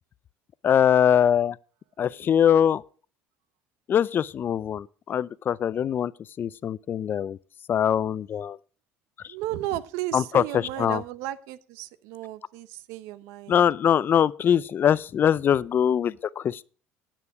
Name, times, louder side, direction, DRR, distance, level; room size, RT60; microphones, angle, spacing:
voice 1, 0.6-1.6 2.0-2.8 3.9-6.1 6.4-7.4 7.7-8.6 10.1-11.0 13.5-16.6, left 9 dB, 40° left, 0.4 m, -22 dB
voice 2, 9.3-13.6, right 14 dB, 80° right, 0.8 m, -34 dB
9.7 x 8.9 x 4.7 m
supercardioid pair, 90°, 5 cm